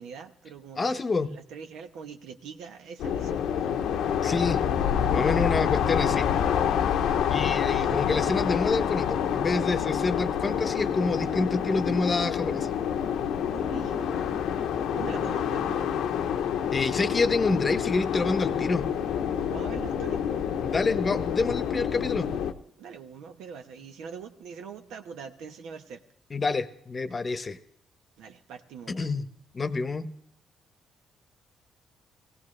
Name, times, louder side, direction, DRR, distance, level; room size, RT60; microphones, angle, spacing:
voice 1, 0.0-3.8 7.6-8.4 13.5-14.4 14.9-15.9 19.3-20.2 22.8-26.0 28.2-29.1, right 6 dB, 85° right, 6 dB, 1.0 m, -43 dB
voice 2, 0.8-1.3 4.2-4.6 5.1-6.3 7.3-12.7 16.7-18.9 20.6-22.3 26.3-27.6 28.9-29.2 29.5-30.1, left 3 dB, 35° left, 13 dB, 0.9 m, -27 dB
sound 1, 3.0-22.5, left 8 dB, 85° left, 0.8 m, -27 dB
17.5 x 17.0 x 3.3 m, 0.69 s
cardioid pair, 90°, 0 cm